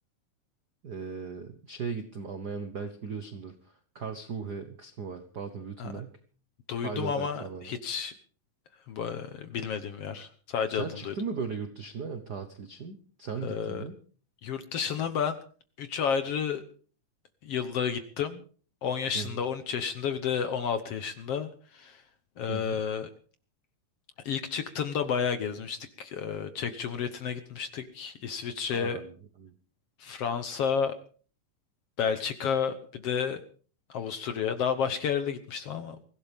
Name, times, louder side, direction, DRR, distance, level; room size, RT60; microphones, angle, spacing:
voice 1, 0.8-3.5 3.9-6.2 6.8-7.7 10.7-14.0 19.1-19.4 22.5-22.8 28.7-29.1 29.4-29.5, right 5 dB, 60° right, 8 dB, 1.0 m, -37 dB
voice 2, 6.7-8.1 8.9-11.1 13.4-13.8 14.4-15.4 15.8-16.6 17.4-18.4 18.8-22.0 22.4-23.1 24.2-29.0 30.0-30.9 32.0-33.4 33.9-36.0, left 7 dB, 65° left, 10 dB, 1.7 m, -31 dB
23.5 x 16.0 x 3.6 m, 0.42 s
omnidirectional pair, 3.7 m